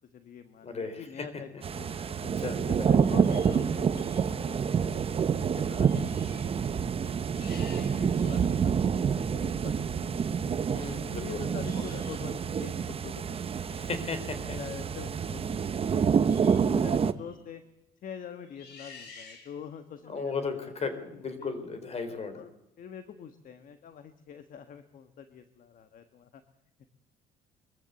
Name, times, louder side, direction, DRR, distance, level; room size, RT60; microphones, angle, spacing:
voice 1, 0.1-2.2 2.7-5.2 5.5-6.5 6.9-10.6 11.2-14.2 14.5-16.3 16.6-17.6 18.0-21.5 22.1-22.5 22.8-26.4 26.8-26.9, left 8 dB, 55° left, 10 dB, 1.6 m, -45 dB
voice 2, 0.6-1.0 2.0-2.6 10.7-11.4 11.9-12.0 13.7-14.6 20.1-22.4, left 4 dB, 40° left, 11 dB, 4.0 m, -35 dB
sound 1, 1.6-17.1, right 7 dB, 35° right, 0.9 m, -28 dB
sound 2, 2.7-4.3 5.0-5.2 5.5-6.6 7.0-8.6 9.3-9.5 11.5-12.3 16.3-16.7 17.1-17.4 18.4-19.8, left 4 dB, 75° left, 6.5 m, -52 dB
23.0 x 15.0 x 8.2 m, 0.95 s
cardioid pair, 110°, 17 cm